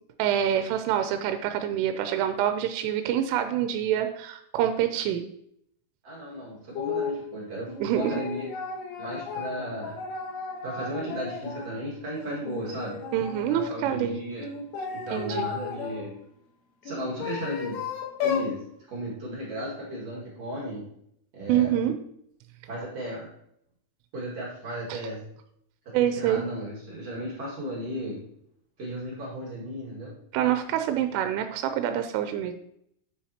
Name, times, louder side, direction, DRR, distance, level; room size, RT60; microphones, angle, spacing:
voice 1, 0.2-5.3 7.8-8.2 13.1-14.2 15.1-15.5 21.5-22.0 24.9-25.0 25.9-26.4 30.3-32.5, right 10 dB, 90° right, 8 dB, 3.1 m, -26 dB
voice 2, 6.0-8.5 9.0-10.0 10.6-13.0 13.5-14.5 14.9-16.1 16.8-17.8 18.2-18.6 18.9-20.9 21.3-21.8 22.7-23.3 24.1-25.2 26.1-28.2 28.8-30.1, equal, 50° right, -5 dB, 2.2 m, -35 dB
sound 1, 6.8-7.2 7.7-11.7 12.1-13.7 14.4-16.0 16.8-18.5, left 6 dB, 85° left, 3.9 m, -34 dB
9.2 x 7.1 x 2.9 m, 0.72 s
omnidirectional pair, 5.6 m